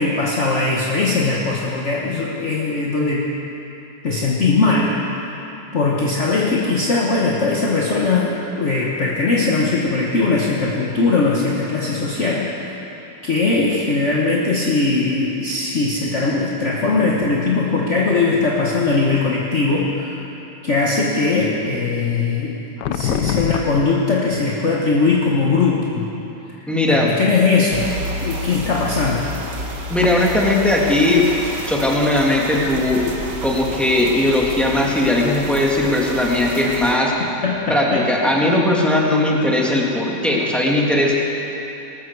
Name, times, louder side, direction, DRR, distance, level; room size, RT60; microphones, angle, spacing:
voice 1, 0.0-3.3 4.0-5.3 5.7-12.7 13.2-20.2 20.6-26.1 26.9-28.0 28.2-29.3 37.4-38.1, left 3 dB, 45° left, -3 dB, 1.4 m, -20 dB
sound 1, 22.8-23.8 25.4-25.7 27.6-27.9 30.0-30.2, left 9 dB, 75° left, 1.2 m, -23 dB
voice 2, 26.7-27.1 29.9-31.3 31.7-33.1 33.4-37.1 37.7-41.1, left 1 dB, ahead, -3 dB, 1.7 m, -18 dB
sound 2, 27.7-37.0, right 1 dB, 70° right, 2.0 m, -30 dB
20.0 x 13.0 x 4.7 m, 3.0 s
omnidirectional pair, 2.0 m